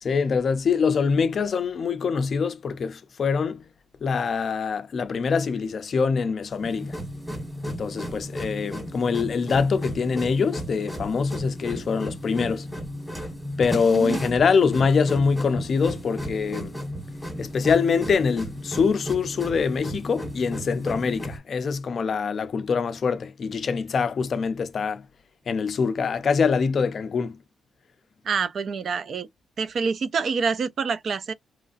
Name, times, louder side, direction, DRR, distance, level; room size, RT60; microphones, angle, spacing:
voice 1, 0.0-3.6 4.0-7.0 7.6-12.7 13.6-16.7 17.4-25.0 25.5-27.4, left 5 dB, 40° left, 0.4 m, -24 dB
sound 1, 6.5-21.4, equal, ahead, 1.3 m, -34 dB
voice 2, 28.3-29.3 29.6-31.3, right 5 dB, 45° right, 0.3 m, -26 dB
3.0 x 2.4 x 2.4 m
wide cardioid pair, 175°, 0 cm